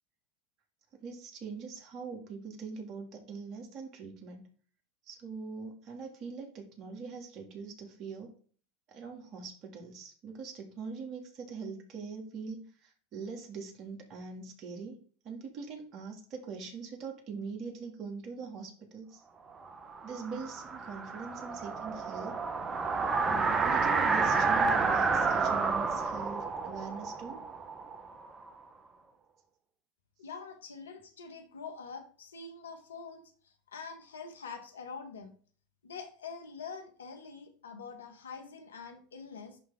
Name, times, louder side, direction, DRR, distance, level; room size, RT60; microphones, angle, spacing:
voice 1, 1.0-4.5 5.1-8.3 8.9-19.2 20.0-22.3 23.2-27.4, right 5 dB, 45° right, 2 dB, 2.4 m, -42 dB
sound 1, 19.7-28.5, right 4 dB, 25° right, 1.1 m, -30 dB
voice 2, 30.2-35.3 35.8-39.6, left 5 dB, 90° left, 6 dB, 1.4 m, -45 dB
10.5 x 3.6 x 3.7 m, 0.43 s
hypercardioid pair, 90°, 0 cm